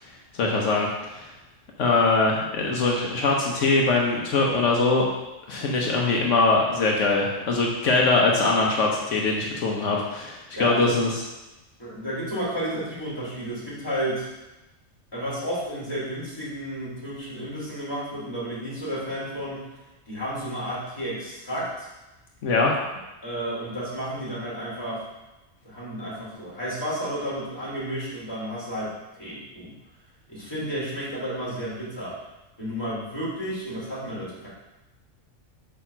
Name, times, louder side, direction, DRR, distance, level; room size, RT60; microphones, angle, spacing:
voice 1, 0.3-1.3 1.8-5.1 5.5-11.2 22.4-22.7, left 3 dB, 80° left, -1 dB, 1.3 m, -22 dB
voice 2, 10.5-10.9 11.8-14.3 15.1-19.6 20.1-21.9 23.2-25.0 25.6-28.9 29.2-29.7 30.3-32.2 32.6-34.5, equal, 20° left, -8 dB, 3.0 m, -32 dB
8.4 x 3.5 x 5.9 m, 1.0 s
omnidirectional pair, 1.2 m